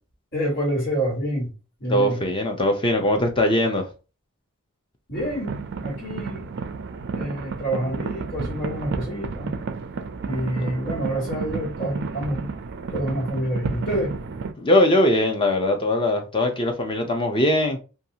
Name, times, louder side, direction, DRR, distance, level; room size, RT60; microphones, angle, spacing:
voice 1, 0.3-1.5 1.8-2.2 5.1-5.5 5.8-6.4 7.1-9.5 10.2-12.5 12.9-14.1, right 1 dB, 55° left, 1.6 m, -27 dB
voice 2, 1.9-3.9 14.6-17.8, left 1 dB, 25° left, 0.5 m, -21 dB
sound 1, 5.1-14.5, right 4 dB, 55° right, 0.3 m, -32 dB
2.6 x 2.3 x 2.7 m
head